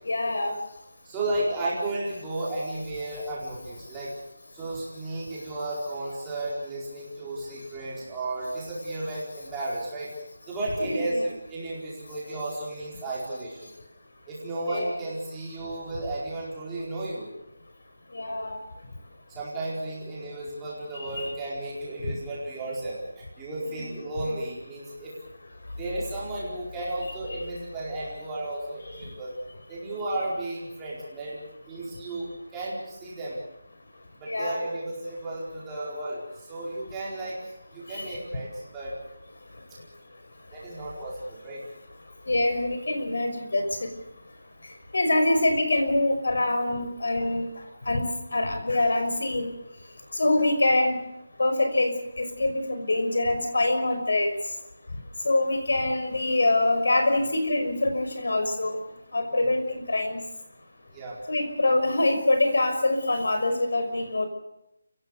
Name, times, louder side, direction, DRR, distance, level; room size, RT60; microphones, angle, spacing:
voice 1, 0.1-0.5 10.9-11.2 14.7-15.0 18.1-18.6 21.0-21.3 23.7-23.8 34.3-34.6 38.0-38.1 42.3-43.6 44.9-47.5 47.9-48.0 48.3-49.5 50.2-51.0 51.4-54.3 55.2-58.8 59.1-60.2 61.3-64.3, left 2 dB, 70° left, 6 dB, 5.9 m, -24 dB
voice 2, 1.0-4.1 4.5-10.1 10.5-11.2 11.5-13.7 14.3-17.3 19.3-25.1 25.7-29.3 29.7-33.4 34.2-38.9 40.5-41.6 59.3-59.5 60.9-61.2, right 2 dB, 10° right, -6 dB, 4.6 m, -33 dB
29.5 x 16.5 x 6.7 m, 0.86 s
figure-of-eight pair, 180°, 0 cm